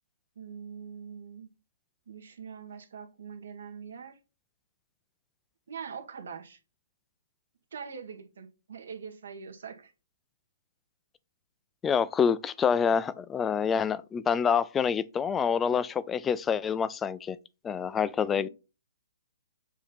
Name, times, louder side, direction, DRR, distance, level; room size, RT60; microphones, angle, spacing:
voice 1, 0.3-1.5 2.1-4.2 5.7-6.6 7.7-9.9 18.3-18.5, right 6 dB, 70° right, 1.5 m, -43 dB
voice 2, 11.8-17.4 17.6-18.5, left 7 dB, 15° left, 0.4 m, -27 dB
7.3 x 2.8 x 5.2 m
hypercardioid pair, 145°, 0 cm